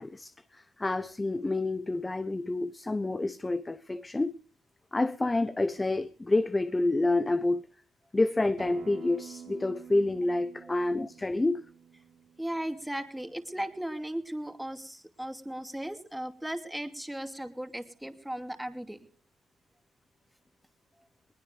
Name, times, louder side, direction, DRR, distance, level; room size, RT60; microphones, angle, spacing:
voice 1, 0.0-4.4 4.9-7.7 8.1-11.6, left 2 dB, 20° left, 0.8 m, -28 dB
Acoustic guitar, 8.6-13.8, right 8 dB, 65° right, 0.9 m, -50 dB
voice 2, 12.4-19.0 21.0-21.1, right 1 dB, 5° right, 2.6 m, -37 dB
21.0 x 19.5 x 3.4 m
cardioid pair, 90°, 0 cm